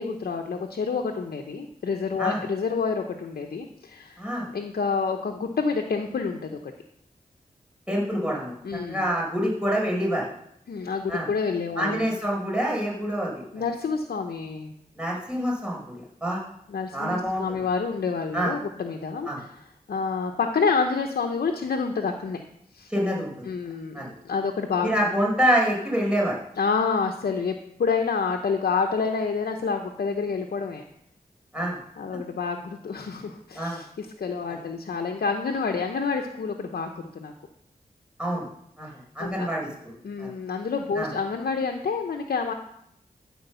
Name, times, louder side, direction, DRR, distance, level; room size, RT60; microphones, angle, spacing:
voice 1, 0.0-4.2 4.5-6.6 8.6-9.0 10.7-12.1 13.5-14.7 16.7-19.5 19.9-22.4 22.7-22.9 23.4-24.9 26.6-27.5 27.8-30.8 32.0-37.3 39.2-39.5 40.0-42.5, left 5 dB, 80° left, 3 dB, 0.8 m, -28 dB
voice 2, 4.2-4.5 7.9-8.5 8.9-10.2 11.1-11.3 11.8-13.4 15.0-15.8 16.2-16.4 16.9-17.4 18.3-18.5 19.3-19.4 22.9-23.3 23.9-24.1 24.8-26.3 31.5-31.8 33.5-33.8 38.2-38.5 38.8-38.9 39.1-39.9 40.2-40.3 40.9-41.1, equal, 5° right, -4 dB, 4.9 m, -26 dB
13.5 x 4.7 x 6.9 m, 0.74 s
wide cardioid pair, 75°, 16 cm